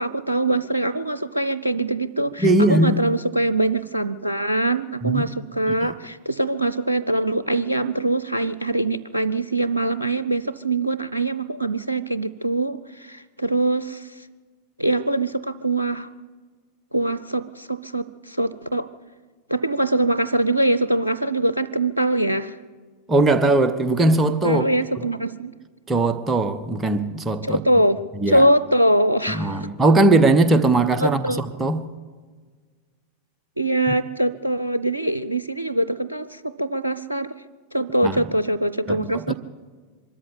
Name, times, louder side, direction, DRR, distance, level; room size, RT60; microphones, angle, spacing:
voice 1, 0.0-14.3 14.8-16.1 16.9-18.9 19.5-22.6 24.4-25.5 27.4-28.0 28.3-29.7 31.0-31.4 33.6-37.3 37.7-39.3, right 1 dB, 85° right, 0.5 m, -23 dB
voice 2, 2.4-3.0 5.0-5.2 23.1-24.7 25.0-25.1 25.9-27.6 28.2-28.5 29.3-31.9 38.0-38.2 38.9-39.3, right 2 dB, 15° right, 1.2 m, -19 dB
24.5 x 13.5 x 8.4 m
figure-of-eight pair, 90°, 0 cm